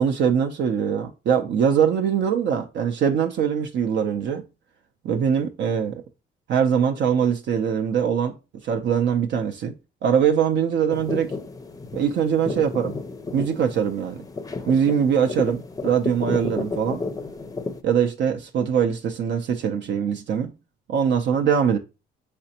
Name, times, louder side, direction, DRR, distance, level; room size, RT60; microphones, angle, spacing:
voice 1, 0.0-4.4 5.0-6.0 6.5-8.3 8.6-9.7 10.0-11.4 11.9-12.9 13.3-14.2 14.7-17.0 17.8-20.5 20.9-21.8, right 7 dB, 65° right, 0.5 m, -22 dB
sound 1, 10.9-17.8, left 3 dB, 15° left, 0.5 m, -32 dB
4.9 x 3.3 x 2.8 m
cardioid pair, 90°, 20 cm